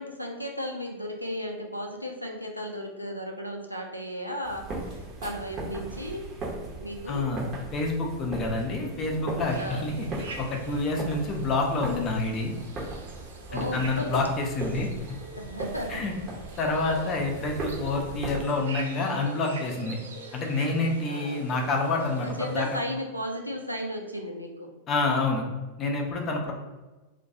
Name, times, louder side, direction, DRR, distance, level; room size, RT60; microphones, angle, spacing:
voice 1, 0.0-4.7 5.2-6.2 6.8-7.3 9.5-9.9 13.5-14.2 15.4-16.0 21.1-21.5 22.2-24.7 26.5-26.6, equal, 90° left, 2 dB, 0.3 m, -34 dB
sound 1, 4.4-18.4, right 2 dB, 30° right, 0.7 m, -38 dB
voice 2, 7.1-10.1 10.4-12.5 13.5-14.9 15.9-16.1 16.6-20.0 20.3-22.3 22.5-22.7 24.9-25.4 25.8-26.5, left 3 dB, 30° left, 1 dB, 0.5 m, -28 dB
sound 2, 9.4-22.8, right 2 dB, 65° right, 0.4 m, -44 dB
2.3 x 2.1 x 2.7 m, 1.2 s
figure-of-eight pair, 90°, 0 cm